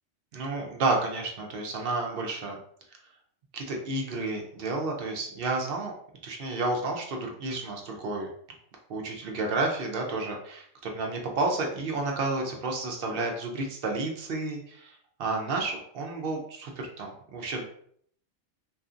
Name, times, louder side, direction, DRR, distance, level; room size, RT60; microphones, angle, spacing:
voice 1, 0.3-2.6 3.5-5.9 6.2-8.3 8.9-17.6, right 3 dB, 60° right, 1 dB, 0.7 m, -31 dB
2.6 x 2.4 x 2.4 m, 0.63 s
omnidirectional pair, 1.3 m